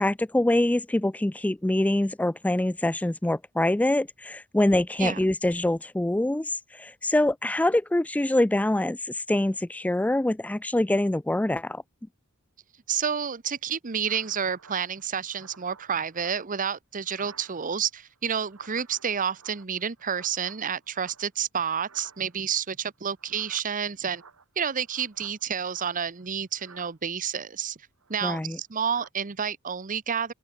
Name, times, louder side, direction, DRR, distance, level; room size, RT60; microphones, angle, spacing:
voice 1, 0.0-11.8 28.2-28.6, left 1 dB, 5° left, 0.3 m, -25 dB
voice 2, 12.9-24.2 24.6-27.8 28.1-30.3, right 7 dB, 40° right, 0.8 m, -30 dB
sound 1, 14.1-16.7 17.0-17.9 18.2-21.5 21.7-22.5 23.2-26.3 26.5-26.9 28.0-28.5 28.8-29.1, right 5 dB, 75° right, 2.0 m, -54 dB
head